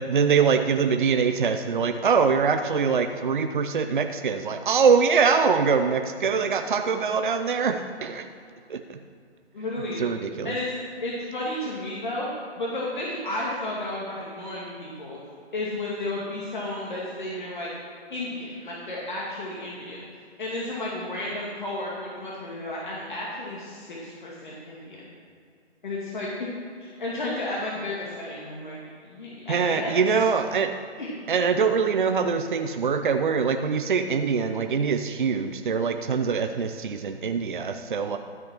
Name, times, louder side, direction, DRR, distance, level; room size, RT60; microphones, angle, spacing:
voice 1, 0.0-8.3 8.7-9.0 10.0-10.6 29.5-30.7 31.3-38.2, right 5 dB, 50° right, 7 dB, 0.7 m, -23 dB
voice 2, 9.5-10.0 10.4-15.2 15.5-17.7 18.1-20.0 20.4-25.1 25.8-26.5 26.8-30.0 31.0-31.1, left 1 dB, 45° left, -5 dB, 2.4 m, -32 dB
13.0 x 6.0 x 6.1 m, 2.4 s
figure-of-eight pair, 155°, 33 cm